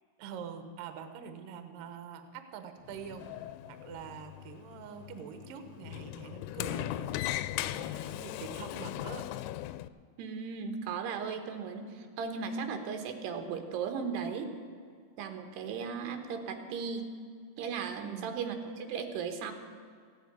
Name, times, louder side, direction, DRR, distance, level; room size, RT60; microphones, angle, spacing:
voice 1, 0.2-3.3 3.7-9.3 18.0-18.4, right 7 dB, 70° right, 8 dB, 2.5 m, -45 dB
Sliding door, 2.8-9.9, left 14 dB, 90° left, 2.6 m, -38 dB
voice 2, 10.2-14.5 15.2-17.1 17.6-19.5, right 6 dB, 90° right, 6 dB, 3.3 m, -36 dB
15.5 x 9.3 x 9.3 m, 2.1 s
omnidirectional pair, 4.6 m